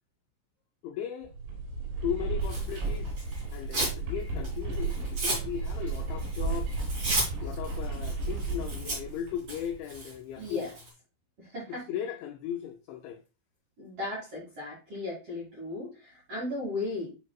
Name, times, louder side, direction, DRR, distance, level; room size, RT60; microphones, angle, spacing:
voice 1, 0.8-1.3 2.0-6.8 7.4-10.7 11.7-13.2, left 9 dB, 90° left, 2.5 m, -37 dB
sound 1, 1.2-9.8, right 3 dB, 80° right, 4.9 m, -34 dB
Tearing, 2.4-4.0 4.4-10.9, right 2 dB, 35° right, 2.5 m, -35 dB
voice 2, 10.4-10.7 11.4-11.8 13.8-17.1, left 2 dB, 50° right, 1.9 m, -36 dB
10.5 x 4.7 x 2.3 m
omnidirectional pair, 5.8 m